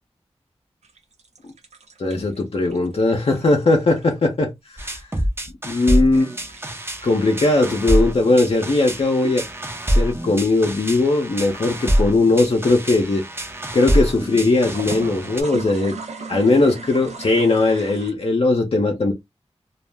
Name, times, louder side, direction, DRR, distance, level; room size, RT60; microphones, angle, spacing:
sound 1, 0.8-4.4 5.7-7.8 8.4-9.3 14.6-18.1, right 4 dB, 85° right, 0.7 m, -37 dB
voice 1, 2.0-5.0 5.7-6.3 7.0-9.4 9.9-13.2 13.7-16.0 16.3-19.1, left 2 dB, 60° left, 0.6 m, -19 dB
sound 2, 4.8-15.4, equal, 20° right, 0.7 m, -25 dB
2.3 x 2.0 x 3.3 m
cardioid pair, 40°, 11 cm